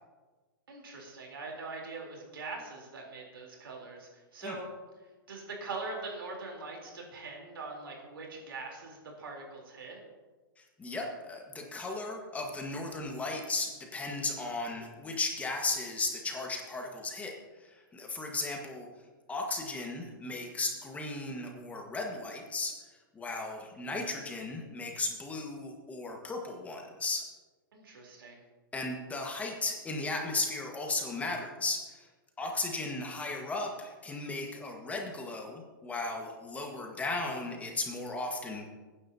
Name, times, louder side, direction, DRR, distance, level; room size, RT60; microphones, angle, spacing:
voice 1, 0.7-4.7 5.3-10.0 27.7-28.4, right 3 dB, 85° right, -1 dB, 3.7 m, -42 dB
voice 2, 10.6-18.9 19.3-22.7 23.1-27.3 28.7-32.1 32.4-38.7, left 3 dB, 10° left, 1 dB, 1.6 m, -36 dB
19.5 x 9.9 x 2.8 m, 1.3 s
hypercardioid pair, 130°, 12 cm